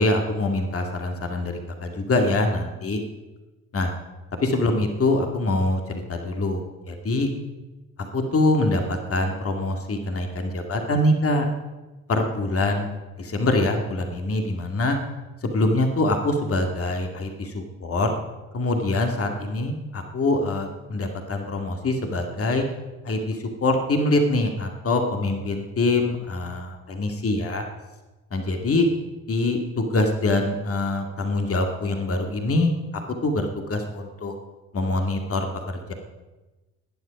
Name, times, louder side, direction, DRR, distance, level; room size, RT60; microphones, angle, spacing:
voice 1, 0.0-3.0 3.7-3.9 4.4-7.3 8.0-11.5 12.1-12.9 13.2-15.0 15.4-18.2 18.5-22.6 23.0-27.7 28.3-28.9 29.3-32.7 33.2-34.3 34.7-35.9, left 2 dB, 30° left, 4 dB, 2.2 m, -24 dB
20.0 x 10.5 x 5.3 m, 1.2 s
figure-of-eight pair, 45°, 43 cm